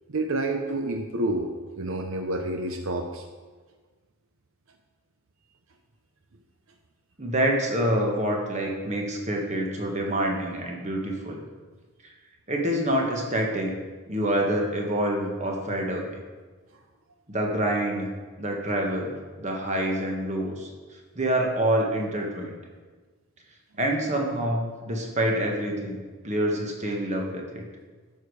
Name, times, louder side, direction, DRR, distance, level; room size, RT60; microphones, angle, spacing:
voice 1, 0.1-3.2, right 2 dB, 70° right, 5 dB, 0.7 m, -29 dB
voice 2, 7.2-11.4 12.0-12.1 12.5-13.7 14.1-16.2 17.3-18.1 18.4-20.7 21.1-22.6 23.8-26.0 26.2-27.6, right 1 dB, 30° right, 0 dB, 1.5 m, -27 dB
11.5 x 6.7 x 4.8 m, 1.4 s
head